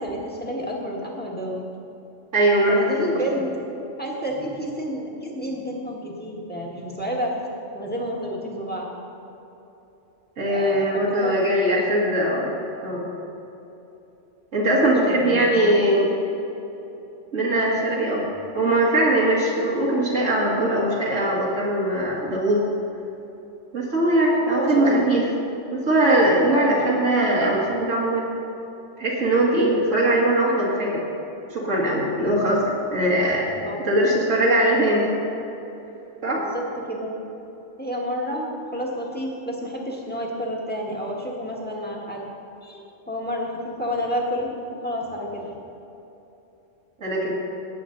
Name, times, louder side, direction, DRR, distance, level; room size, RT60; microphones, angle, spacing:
voice 1, 0.0-1.6 2.7-3.6 4.0-7.3 7.7-8.9 10.5-11.9 14.7-15.7 24.3-25.0 26.5-26.8 33.4-33.8 36.3-37.1 37.8-42.3 42.6-44.5 44.8-45.6, equal, 10° left, -2 dB, 1.6 m, -30 dB
voice 2, 2.3-2.9 3.1-3.2 10.4-12.5 12.8-13.0 14.5-16.1 17.3-18.3 18.5-22.6 23.7-25.2 25.7-28.2 29.0-31.0 31.5-33.5 33.8-35.1 36.2-36.5 47.0-47.3, right 1 dB, 75° right, -6 dB, 2.2 m, -21 dB
17.5 x 8.6 x 3.9 m, 3.0 s
omnidirectional pair, 1.3 m